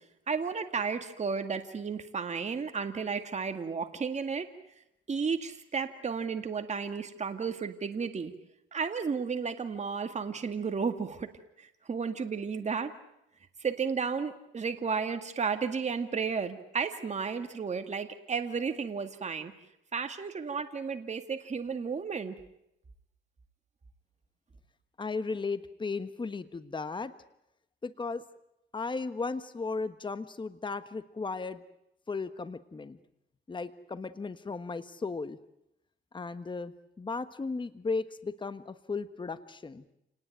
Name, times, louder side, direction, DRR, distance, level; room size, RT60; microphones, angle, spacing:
voice 1, 0.3-4.5 5.1-8.3 8.7-11.3 11.6-12.9 13.6-19.5 19.9-22.4, right 5 dB, 35° right, 7 dB, 2.0 m, -33 dB
voice 2, 25.0-27.1 27.8-28.2 28.7-31.6 32.1-33.0 33.5-35.4 36.1-39.8, left 4 dB, 25° left, 12 dB, 1.3 m, -35 dB
28.5 x 19.5 x 9.3 m, 0.84 s
cardioid pair, 90°, 20 cm